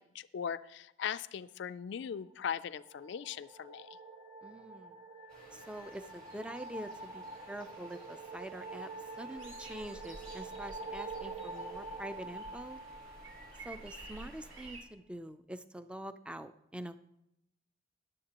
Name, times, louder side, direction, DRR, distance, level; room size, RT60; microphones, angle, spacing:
voice 1, 0.0-3.9, left 7 dB, 65° left, 14 dB, 0.3 m, -39 dB
sound 1, 2.4-13.8, right 3 dB, 25° right, 1.6 m, -46 dB
voice 2, 4.4-5.0 5.5-8.9 9.2-12.8 13.6-17.0, right 1 dB, 5° right, 11 dB, 0.4 m, -45 dB
sound 2, 5.3-14.7, right 1 dB, 50° right, 4.3 m, -56 dB
Birds Singing, 9.4-14.8, right 2 dB, 90° right, 2.5 m, -52 dB
14.0 x 11.0 x 2.9 m, 0.81 s
head